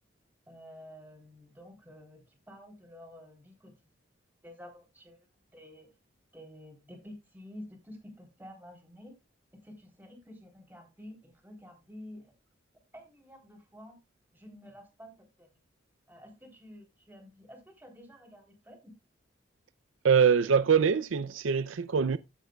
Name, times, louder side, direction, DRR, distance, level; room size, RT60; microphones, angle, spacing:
voice 1, 0.5-3.7 4.4-5.2 5.5-5.9 6.3-9.1 9.6-12.3 12.9-14.0 14.3-15.1 15.4-15.5 16.1-18.9, left 1 dB, 10° right, 3.5 m, -50 dB
voice 2, 20.0-22.2, right 6 dB, 85° right, 0.5 m, -24 dB
14.0 x 9.1 x 2.3 m
head